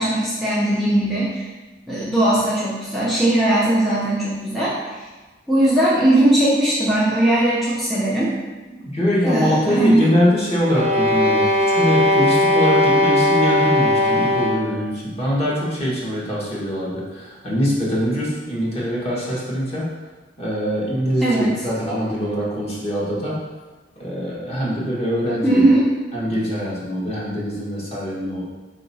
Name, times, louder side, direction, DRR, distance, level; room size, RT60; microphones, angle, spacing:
voice 1, 0.0-1.5 1.9-4.7 5.5-8.3 9.2-10.0 21.2-21.5 25.4-25.9, right 1 dB, ahead, -9 dB, 0.6 m, -18 dB
voice 2, 8.7-19.9 20.4-23.4 24.0-25.6 26.1-28.4, equal, 35° left, -6 dB, 1.3 m, -23 dB
sound 1, 10.6-14.8, left 1 dB, 40° right, 0.5 m, -18 dB
4.5 x 2.9 x 4.0 m, 1.2 s
head